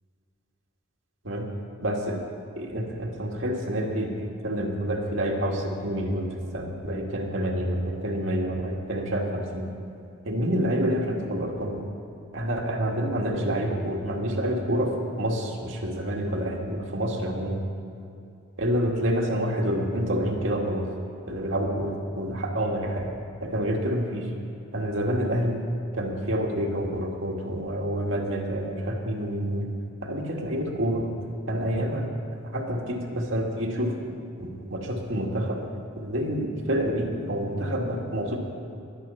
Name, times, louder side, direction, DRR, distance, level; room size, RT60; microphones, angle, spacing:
voice 1, 1.8-2.3 2.6-4.1 4.4-9.7 10.3-11.8 12.3-17.6 18.6-20.9 21.3-23.1 23.4-24.3 24.7-25.6 25.9-29.7 30.0-31.0 31.5-32.1 32.5-34.0 34.4-35.6 36.0-38.4, equal, 65° right, 0 dB, 2.1 m, -28 dB
22.5 x 8.5 x 5.7 m, 2.6 s
head